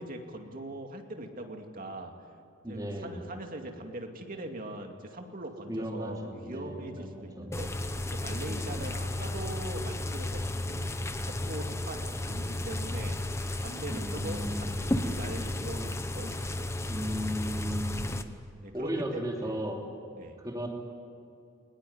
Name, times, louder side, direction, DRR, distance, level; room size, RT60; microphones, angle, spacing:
voice 1, 0.0-2.1 2.7-7.7 8.1-10.9 11.2-13.2 13.6-16.8 18.6-19.5 20.1-20.4, right 1 dB, 45° right, 3 dB, 2.5 m, -41 dB
voice 2, 2.6-3.2 5.7-7.5 8.5-8.8 13.9-14.7 16.9-18.2 18.7-19.8 20.4-20.7, equal, 20° right, 0 dB, 3.1 m, -35 dB
sound 1, 7.5-18.2, left 1 dB, 15° left, 1.0 m, -33 dB
22.5 x 20.5 x 9.6 m, 2.5 s
head